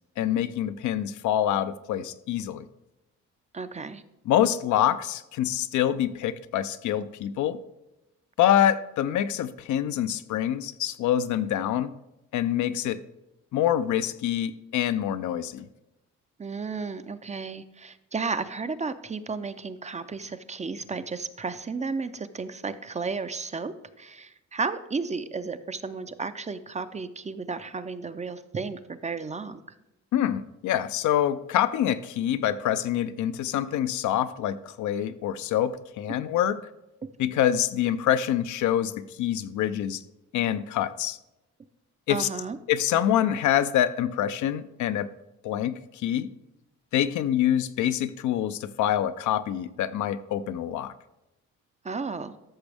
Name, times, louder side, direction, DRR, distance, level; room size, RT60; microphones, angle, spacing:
voice 1, 0.2-2.6 4.3-7.6 8.4-11.9 12.3-13.0 13.5-15.7 30.1-36.6 37.2-40.0 40.3-41.2 42.1-42.3 42.7-45.1 45.4-46.3 46.9-50.9, left 11 dB, 75° left, 13 dB, 0.5 m, -26 dB
voice 2, 3.5-4.0 16.4-29.6 42.1-42.6 51.8-52.4, right 4 dB, 25° right, 11 dB, 0.5 m, -33 dB
13.5 x 6.1 x 3.4 m, 0.93 s
cardioid pair, 90°, 30 cm